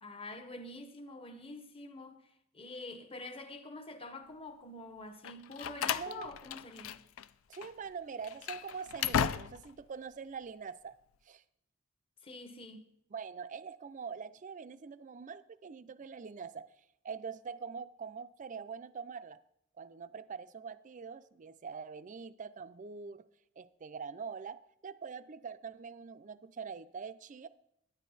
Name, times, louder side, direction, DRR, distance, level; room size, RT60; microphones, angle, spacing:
voice 1, 0.0-2.2 2.5-6.9 12.2-12.8, left 2 dB, 30° left, 1.0 m, -46 dB
Slam, 5.2-7.3 7.5-7.7 8.2-9.8, left 8 dB, 75° left, 0.4 m, -35 dB
voice 2, 6.0-6.3 7.5-11.0 11.3-11.4 13.1-16.7 17.0-19.4 19.8-23.2 23.6-27.5, right 5 dB, 40° right, 0.4 m, -44 dB
10.5 x 10.0 x 4.0 m
head